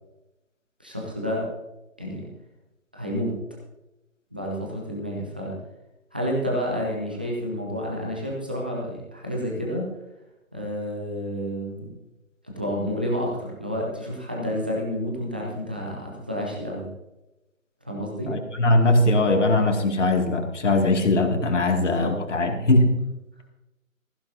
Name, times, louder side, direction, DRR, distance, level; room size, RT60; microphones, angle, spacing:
voice 1, 0.8-1.5 2.0-2.3 2.9-3.4 4.3-5.6 6.1-9.9 10.5-11.9 12.4-16.9 17.9-18.3 21.6-22.2, equal, 5° right, -2 dB, 0.6 m, -30 dB
voice 2, 18.3-22.9, left 2 dB, 60° left, 4 dB, 2.3 m, -20 dB
16.0 x 15.0 x 2.7 m, 0.95 s
figure-of-eight pair, 150°, 41 cm